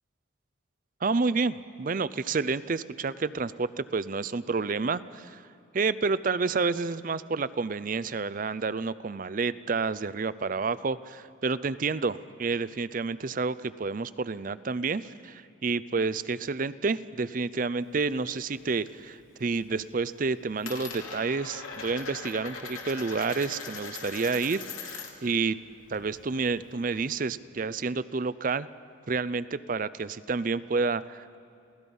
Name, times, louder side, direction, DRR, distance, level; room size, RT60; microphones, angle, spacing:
voice 1, 1.0-5.4 5.7-25.6 25.9-28.7 29.1-31.4, right 4 dB, 40° right, 17 dB, 0.5 m, -29 dB
Coin (dropping), 17.8-18.9 19.3-19.8 20.0-25.3 25.6-27.3, left 5 dB, 90° left, 2.7 m, -41 dB
29.5 x 17.5 x 5.4 m, 2.7 s
head